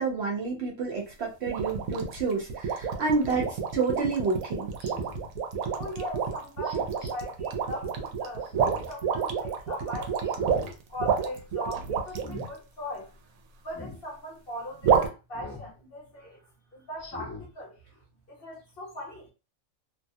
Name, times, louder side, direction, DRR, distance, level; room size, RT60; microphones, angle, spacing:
voice 1, 0.0-4.7, right 4 dB, 60° right, 0.8 m, -29 dB
sound 1, 1.5-12.5 14.8-15.1, right 6 dB, 90° right, 1.0 m, -29 dB
Speech synthesizer, 1.6-1.8 3.3-3.6 4.8-5.3 6.6-7.1 8.4-8.9 9.3-9.4 10.2-10.8 11.1-11.4 12.1-12.5 13.7-14.0 15.3-15.7 16.2-16.3 17.0-17.5 17.9-18.0, left 2 dB, 15° left, 0.6 m, -43 dB
voice 2, 5.7-8.5 8.9-10.5 10.9-13.1 13.6-16.4 16.7-17.8 18.3-19.3, left 1 dB, 45° left, 1.1 m, -40 dB
2.6 x 2.1 x 2.6 m
omnidirectional pair, 1.5 m